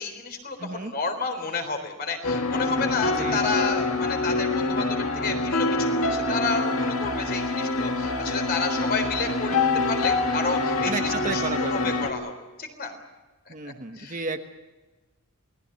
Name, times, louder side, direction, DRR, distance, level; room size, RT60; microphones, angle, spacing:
voice 1, 0.0-9.6 9.9-12.3 12.6-13.0 13.5-14.2, left 4 dB, 45° left, 6 dB, 3.9 m, -30 dB
voice 2, 0.6-0.9 3.1-3.7 9.5-9.9 10.8-11.9 13.5-14.4, right 3 dB, 35° right, 6 dB, 1.2 m, -33 dB
sound 1, 2.2-12.1, left 2 dB, 65° left, 2.4 m, -26 dB
28.5 x 19.5 x 6.9 m, 1.2 s
head